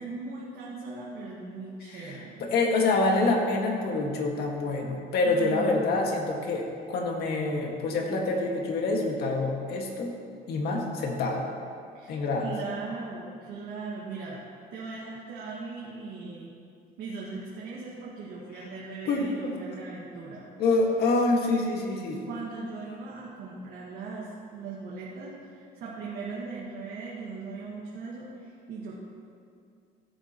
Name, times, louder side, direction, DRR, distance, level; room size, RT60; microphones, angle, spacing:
voice 1, 0.0-2.5 5.2-5.8 11.9-14.4 14.7-16.5 17.0-20.4 22.2-28.9, right 4 dB, 75° right, -6 dB, 1.9 m, -39 dB
voice 2, 1.9-10.1 10.5-11.4 12.1-12.5 19.1-19.5 20.6-22.2, left 3 dB, 70° left, 0 dB, 1.9 m, -26 dB
16.0 x 8.8 x 3.1 m, 2.4 s
cardioid pair, 110°, 17 cm